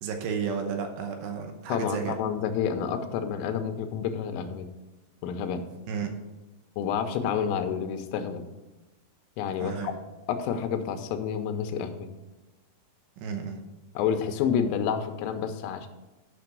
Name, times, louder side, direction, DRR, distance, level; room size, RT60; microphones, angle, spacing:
voice 1, 0.0-2.2 5.9-6.2 9.6-9.9 13.2-13.6, right 6 dB, 75° right, 4 dB, 2.8 m, -32 dB
voice 2, 1.7-4.7 5.2-5.6 6.8-8.4 9.4-9.9 10.3-12.1 13.9-15.9, left 7 dB, 85° left, 7 dB, 3.4 m, -29 dB
9.7 x 5.9 x 6.1 m, 1.1 s
omnidirectional pair, 5.7 m